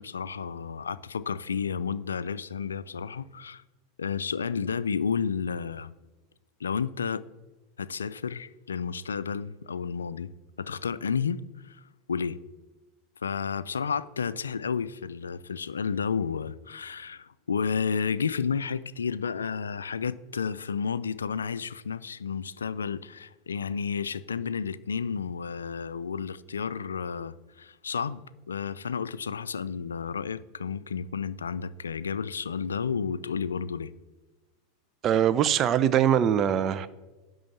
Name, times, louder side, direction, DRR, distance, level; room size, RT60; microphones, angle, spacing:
voice 1, 0.0-3.6 4.0-5.9 6.6-7.3 7.8-10.3 10.6-12.4 13.2-28.2 28.5-33.9, left 6 dB, 90° left, 0.3 m, -31 dB
voice 2, 35.0-36.9, right 9 dB, 40° right, 0.5 m, -22 dB
10.5 x 3.8 x 7.0 m
hypercardioid pair, 90°, 0 cm